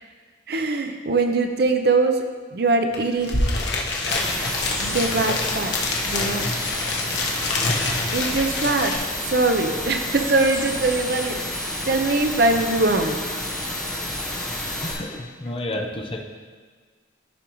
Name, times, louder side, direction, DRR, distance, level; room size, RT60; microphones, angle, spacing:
voice 1, 0.5-2.2 2.5-3.4 4.8-5.7 6.0-6.5 8.1-9.0 9.2-13.2, right 3 dB, 55° right, 5 dB, 0.6 m, -22 dB
sound 1, 2.9-3.0 3.2-9.0, left 2 dB, 65° left, 1.1 m, -26 dB
sound 2, 4.1-14.9, left 1 dB, 5° left, 1.3 m, -30 dB
voice 2, 14.8-16.2, left 1 dB, 30° left, 2 dB, 0.7 m, -30 dB
14.0 x 5.1 x 3.0 m, 1.5 s
head